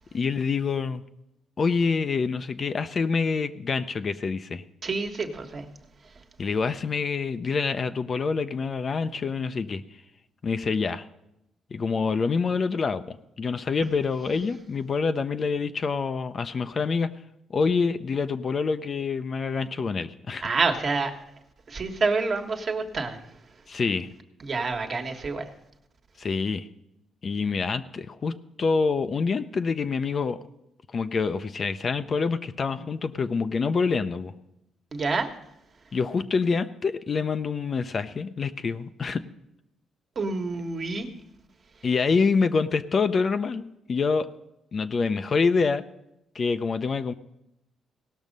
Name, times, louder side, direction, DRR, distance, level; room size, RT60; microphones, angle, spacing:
voice 1, 0.1-1.0 1.6-4.6 6.4-9.8 10.4-11.0 11.7-17.1 17.5-20.5 23.7-24.1 26.2-26.7 27.2-30.4 30.9-34.3 35.9-39.2 41.8-44.3 44.7-45.8 46.3-47.1, left 5 dB, 45° left, 10 dB, 0.5 m, -26 dB
voice 2, 4.8-5.7 20.4-21.1 21.7-23.2 24.4-25.5 34.9-35.3 40.1-41.1, right 4 dB, 45° right, 4 dB, 1.4 m, -27 dB
17.5 x 6.2 x 5.3 m, 0.85 s
cardioid pair, 90°, 0 cm